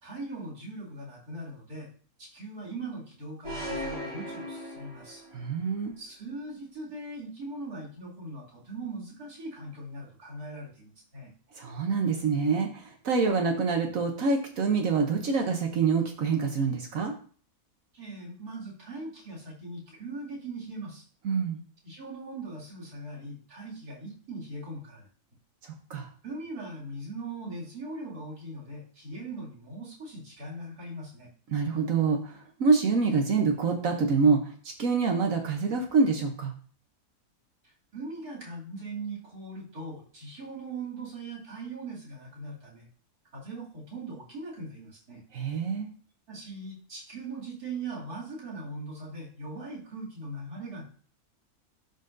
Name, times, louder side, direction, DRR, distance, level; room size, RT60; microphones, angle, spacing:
voice 1, 0.0-1.9 2.2-5.2 6.0-11.3 17.9-21.0 21.8-25.0 26.2-31.3 37.6-42.9 43.3-45.2 46.3-50.8, right 2 dB, 85° right, -4 dB, 3.0 m, -40 dB
sound 1, 3.4-5.4, equal, 20° right, 2.5 m, -37 dB
voice 2, 5.3-5.9 11.6-17.1 21.2-21.6 25.9-26.1 31.5-32.3 32.6-34.4 34.8-36.5 45.3-45.9, right 4 dB, 65° right, 3 dB, 1.2 m, -26 dB
12.0 x 4.0 x 2.6 m, 0.43 s
omnidirectional pair, 1.6 m